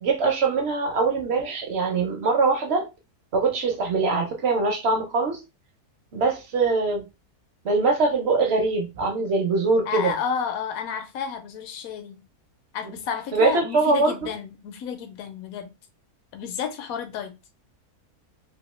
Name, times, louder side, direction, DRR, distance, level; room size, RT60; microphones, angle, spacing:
voice 1, 0.0-2.9 3.3-5.4 6.1-7.0 7.6-10.1 13.3-14.1, right 3 dB, 55° right, 0.8 m, -22 dB
voice 2, 9.9-12.2 12.7-15.7 16.3-17.3, left 7 dB, 70° left, 1.1 m, -31 dB
3.0 x 2.6 x 3.0 m
omnidirectional pair, 1.7 m